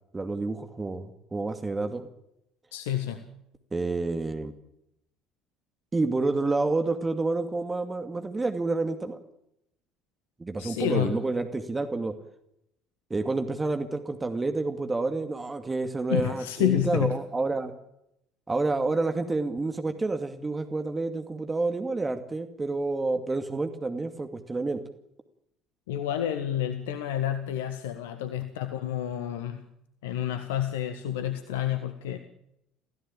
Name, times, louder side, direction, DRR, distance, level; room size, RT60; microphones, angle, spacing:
voice 1, 0.1-2.1 3.7-4.5 5.9-9.2 10.4-12.2 13.1-17.7 18.5-24.8, right 3 dB, 20° right, 7 dB, 2.3 m, -29 dB
voice 2, 2.7-3.3 10.6-11.2 16.1-17.2 25.9-29.7 30.0-32.2, left 11 dB, 65° left, 8 dB, 1.5 m, -29 dB
28.0 x 16.0 x 8.8 m, 0.81 s
figure-of-eight pair, 60°, 0 cm